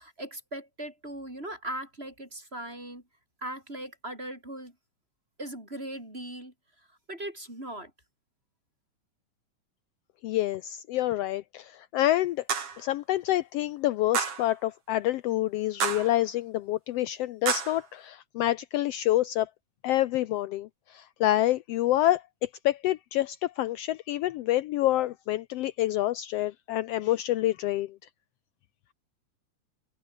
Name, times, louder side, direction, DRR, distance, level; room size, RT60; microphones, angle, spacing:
voice 1, 0.0-3.0 3.4-4.7 5.4-6.5 7.1-7.9, right 1 dB, 20° right, 8.1 m, -39 dB
voice 2, 10.2-12.4 12.8-19.5 19.8-28.0, left 14 dB, 80° left, 1.4 m, -27 dB
sound 1, 12.5-12.8 14.1-14.5 15.8-16.2 17.5-17.8, right 6 dB, 50° right, 3.5 m, -29 dB
omnidirectional pair, 3.5 m